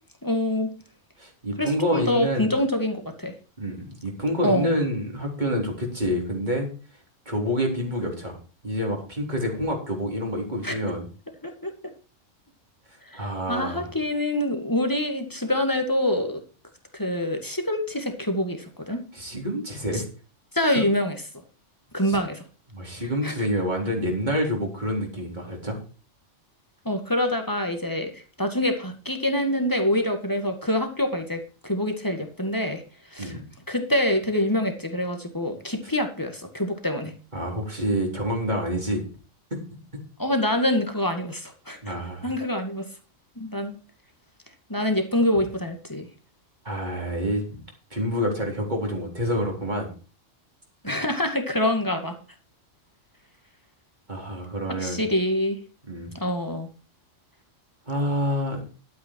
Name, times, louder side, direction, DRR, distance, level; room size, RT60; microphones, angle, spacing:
voice 1, 0.2-0.7 1.6-3.3 4.4-4.8 10.6-11.0 11.4-11.7 13.0-16.4 16.9-19.0 19.9-20.0 20.5-21.2 21.9-22.4 23.2-23.3 26.9-32.8 33.1-33.4 33.7-37.1 40.2-41.8 42.2-42.9 43.4-43.8 44.7-46.1 50.8-52.2 54.8-55.6 56.1-56.7, left 1 dB, 15° left, 5 dB, 2.0 m, -25 dB
voice 2, 1.2-2.5 3.6-6.7 7.3-8.4 8.6-11.1 13.1-13.9 19.1-20.0 20.7-20.8 22.1-22.2 22.7-25.8 33.2-33.4 37.3-39.0 41.8-42.3 46.6-47.6 47.9-49.9 50.9-51.0 54.1-55.0 55.9-56.1 57.9-58.6, equal, 35° right, 0 dB, 4.1 m, -27 dB
12.0 x 9.4 x 4.6 m, 0.36 s
omnidirectional pair, 1.3 m